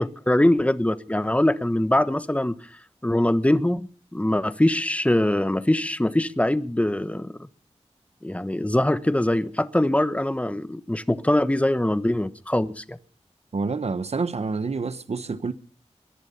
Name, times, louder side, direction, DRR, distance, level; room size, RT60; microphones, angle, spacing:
voice 1, 0.0-2.6 3.0-7.5 8.2-13.0, left 1 dB, 10° left, 1.2 m, -23 dB
voice 2, 13.5-15.5, right 4 dB, 65° right, 1.1 m, -28 dB
22.5 x 11.0 x 5.7 m
wide cardioid pair, 65°, 12 cm